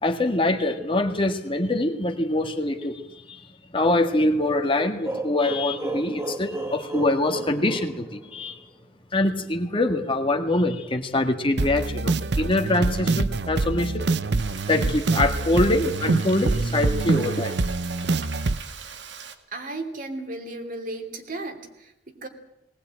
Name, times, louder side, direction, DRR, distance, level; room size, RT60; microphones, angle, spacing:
voice 1, 0.0-3.0 3.3-3.4 3.7-8.6 9.1-14.0 14.7-17.5, left 2 dB, 30° left, 5 dB, 1.8 m, -24 dB
sound 1, 5.0-8.8, right 2 dB, 15° right, 1.7 m, -33 dB
sound 2, 11.6-18.6, right 3 dB, 70° right, 0.8 m, -25 dB
Frying (food), 14.3-19.3, right 6 dB, 85° right, 2.1 m, -40 dB
voice 2, 19.5-22.3, right 2 dB, 50° right, 4 dB, 3.0 m, -35 dB
20.0 x 19.0 x 8.9 m, 0.86 s
head